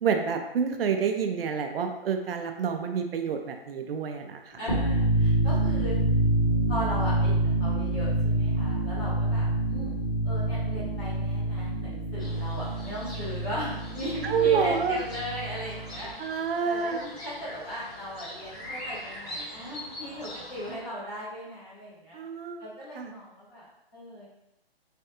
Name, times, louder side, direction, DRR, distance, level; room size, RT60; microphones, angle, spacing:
voice 1, 0.0-4.6 14.2-15.0 16.2-17.1 22.1-22.6 23.0-23.1, right 6 dB, 70° right, 5 dB, 0.5 m, -28 dB
sound 1, 4.6-16.1, right 2 dB, 35° left, 0.9 m, -27 dB
voice 2, 4.6-6.0 6.7-10.0 10.2-22.2 22.6-23.6 23.9-24.3, equal, 10° left, -10 dB, 0.5 m, -37 dB
sound 2, 12.2-20.8, equal, 90° left, 1.3 m, -43 dB
3.2 x 2.3 x 2.8 m, 0.88 s
hypercardioid pair, 150°, 31 cm